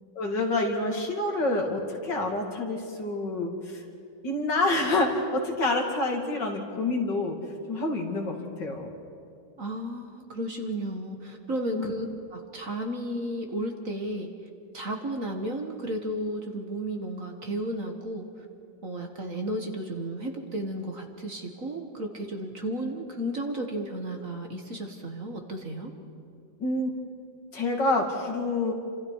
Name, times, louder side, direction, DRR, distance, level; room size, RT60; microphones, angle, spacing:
voice 1, 0.2-3.8 4.2-7.4 7.7-8.9 11.7-11.9 26.6-26.9 27.5-28.7, left 2 dB, 60° left, 1 dB, 3.1 m, -27 dB
voice 2, 9.6-12.1 12.3-14.3 14.7-18.5 18.8-25.9, right 1 dB, 45° right, 3 dB, 2.0 m, -33 dB
29.5 x 26.0 x 4.8 m, 2.5 s
omnidirectional pair, 2.2 m